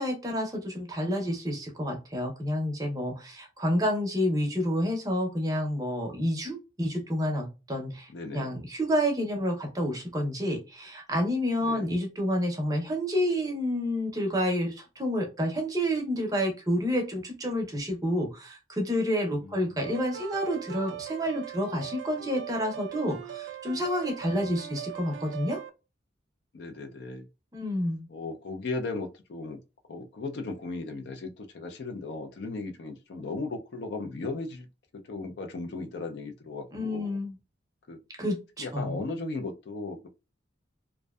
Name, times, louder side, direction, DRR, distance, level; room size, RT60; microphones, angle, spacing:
voice 1, 0.0-25.6 27.5-28.1 36.7-37.3 38.2-39.0, equal, 20° right, 0.5 m, -29 dB
voice 2, 8.1-8.5 11.6-11.9 19.4-19.8 24.2-24.6 26.5-27.3 28.1-29.6 29.9-34.7 34.9-37.2 37.9-38.0 38.6-40.1, left 3 dB, 65° left, 0.4 m, -36 dB
sound 1, 19.8-25.7, right 10 dB, 80° right, 0.3 m, -40 dB
2.6 x 2.1 x 2.2 m
head